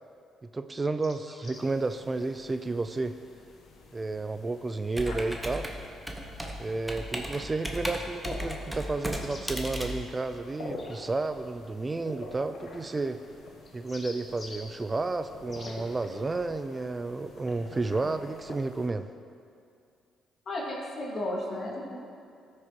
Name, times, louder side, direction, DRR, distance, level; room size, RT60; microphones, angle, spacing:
voice 1, 0.5-3.2 3.9-5.7 6.6-13.2 13.7-19.1, right 3 dB, 25° right, 10 dB, 0.3 m, -31 dB
sound 1, 0.8-1.7 4.9-5.0 9.2-9.5 10.7-11.0 12.9-13.0 13.6-14.7 15.5-15.8, left 2 dB, 35° left, 1.3 m, -47 dB
sound 2, 1.5-18.9, left 2 dB, 70° left, 1.2 m, -47 dB
Computer keyboard, 4.9-10.9, equal, 5° right, 1.0 m, -36 dB
voice 2, 20.5-22.0, left 1 dB, 55° left, -3 dB, 2.2 m, -33 dB
13.5 x 6.3 x 3.0 m, 2.4 s
supercardioid pair, 70°, 0 cm